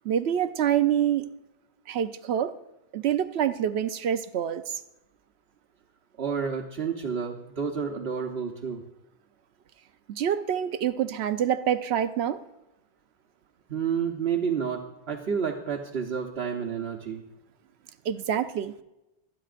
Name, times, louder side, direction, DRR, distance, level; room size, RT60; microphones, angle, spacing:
voice 1, 0.0-1.3 1.9-2.5 2.9-4.8 10.1-12.4 18.0-18.7, right 9 dB, 90° right, 11 dB, 0.9 m, -26 dB
voice 2, 6.2-8.8 13.7-17.2, right 6 dB, 75° right, 0 dB, 1.2 m, -30 dB
25.5 x 9.7 x 2.5 m, 0.95 s
omnidirectional pair, 1.1 m